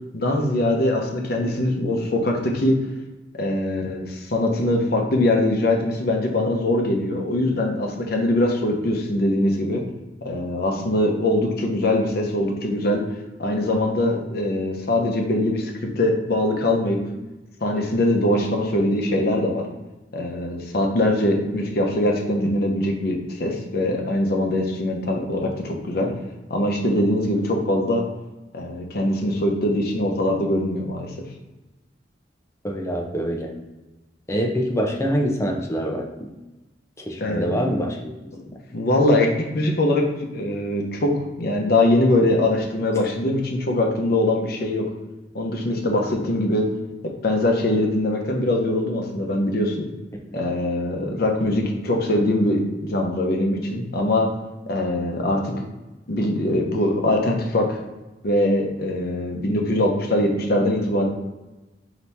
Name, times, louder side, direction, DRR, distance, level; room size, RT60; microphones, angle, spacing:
voice 1, 0.1-2.8 3.4-9.8 10.2-13.0 13.4-15.7 16.0-17.0 17.6-19.7 20.1-26.1 26.5-28.0 28.5-31.1 37.2-37.5 38.7-40.1 40.3-41.1 41.4-44.9 45.3-46.7 47.0-49.9 50.3-54.3 54.7-55.5 56.1-57.8 58.2-61.1, left 1 dB, 60° left, 2 dB, 0.8 m, -22 dB
voice 2, 32.6-33.5 34.3-36.3 37.0-38.1, equal, 15° left, 1 dB, 0.6 m, -25 dB
4.2 x 2.9 x 3.4 m, 1.1 s
head